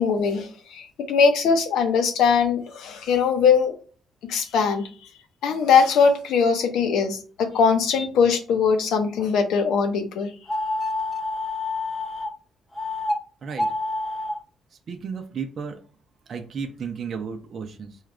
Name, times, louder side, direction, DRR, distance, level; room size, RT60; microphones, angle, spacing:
voice 1, 0.0-3.7 4.3-4.9 5.4-10.3, left 6 dB, 80° left, 5 dB, 0.8 m, -21 dB
sound 1, 10.5-12.3 12.8-13.2 13.5-14.3, left 2 dB, 30° left, 0.9 m, -27 dB
voice 2, 14.9-15.8 16.3-18.0, right 6 dB, 55° right, 5 dB, 0.6 m, -33 dB
4.6 x 2.4 x 3.3 m, 0.38 s
cardioid pair, 90°, 0 cm